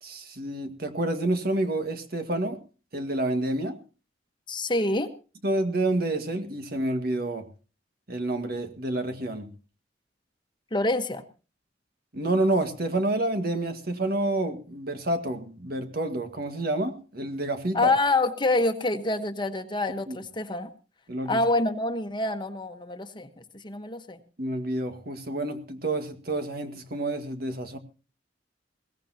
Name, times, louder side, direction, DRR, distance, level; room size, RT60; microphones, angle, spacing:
voice 1, 0.0-2.6 2.9-3.8 5.4-7.5 8.1-9.5 12.1-17.9 20.1-20.2 21.1-21.4 24.4-27.8, right 2 dB, 55° right, 1.7 m, -28 dB
voice 2, 4.5-5.1 10.7-11.2 17.7-20.7 21.3-24.2, left 2 dB, 25° left, 1.2 m, -26 dB
21.5 x 17.5 x 2.9 m
head